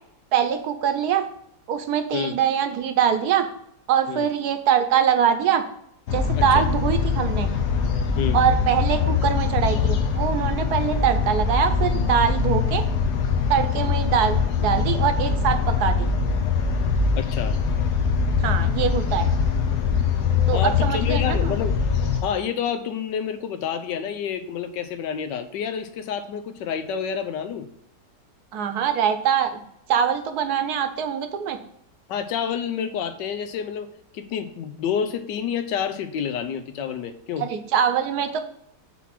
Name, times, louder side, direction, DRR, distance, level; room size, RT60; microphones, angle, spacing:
voice 1, 0.3-1.2 1.7-3.5 3.9-5.6 6.1-7.5 8.3-12.8 13.5-16.1 18.4-19.2 20.5-21.5 28.5-29.6 29.9-31.6 37.4-38.4, right 8 dB, 70° right, 8 dB, 1.2 m, -23 dB
sound 1, 6.1-22.2, left 6 dB, 70° left, 1.4 m, -23 dB
voice 2, 6.4-6.7 8.2-8.4 17.2-17.6 20.5-21.8 22.2-27.7 32.1-33.9 34.1-37.5, left 8 dB, 90° left, 8 dB, 1.4 m, -29 dB
5.9 x 4.1 x 5.7 m, 0.76 s
omnidirectional pair, 1.8 m